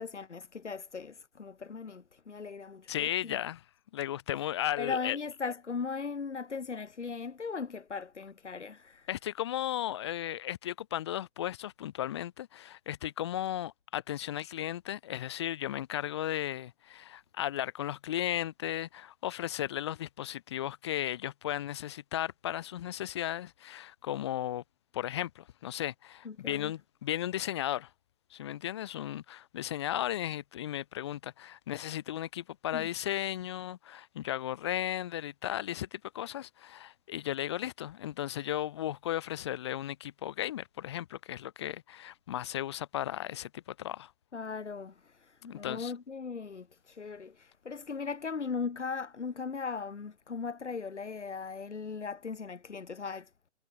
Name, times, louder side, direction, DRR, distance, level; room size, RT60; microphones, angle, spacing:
voice 1, 0.0-3.4 4.8-9.1 26.2-26.7 32.7-32.9 44.3-53.3, left 5 dB, 70° left, 1.6 m, -38 dB
voice 2, 2.9-3.6 3.9-5.2 9.1-24.6 24.9-27.9 28.3-44.1 45.5-45.9, left 12 dB, 25° left, 1.0 m, -35 dB
figure-of-eight pair, 145°, 36 cm